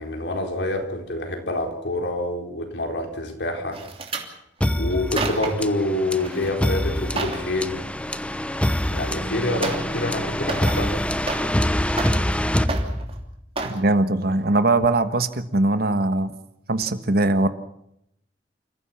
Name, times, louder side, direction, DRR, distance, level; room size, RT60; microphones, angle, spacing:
voice 1, 0.0-3.8 4.7-7.9 8.9-10.9, left 1 dB, 70° left, 3 dB, 4.1 m, -27 dB
sound 1, 3.7-4.3 4.9-5.7 6.2-6.5 6.9-7.5 8.8-8.9 9.6-10.0 10.3-11.6 11.9-12.4 12.7-13.2 13.6-13.8 14.3-14.5 14.8-14.9, right 3 dB, 35° right, 3.0 m, -30 dB
sound 2, 4.6-13.4, left 1 dB, 5° left, 0.9 m, -25 dB
voice 2, 13.6-16.3 16.7-17.5, right 2 dB, 60° right, 11 dB, 1.5 m, -21 dB
28.5 x 15.0 x 7.3 m, 0.77 s
head